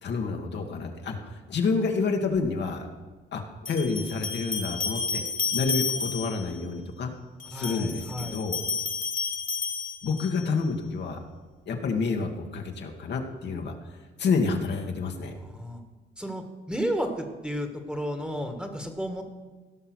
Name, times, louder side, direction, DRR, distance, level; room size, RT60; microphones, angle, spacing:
voice 1, 0.0-2.9 3.3-5.2 5.5-7.1 7.5-8.6 10.0-11.2 11.7-13.7 14.2-15.3, left 4 dB, 60° left, 3 dB, 1.6 m, -29 dB
sound 1, 2.4-2.5 3.6-6.5 7.4-10.5, left 4 dB, 40° left, 1.8 m, -31 dB
voice 2, 7.5-8.4 15.2-15.8 16.2-19.2, equal, 5° right, 5 dB, 1.7 m, -33 dB
16.5 x 5.7 x 6.2 m, 1.3 s
cardioid pair, 90°, 20 cm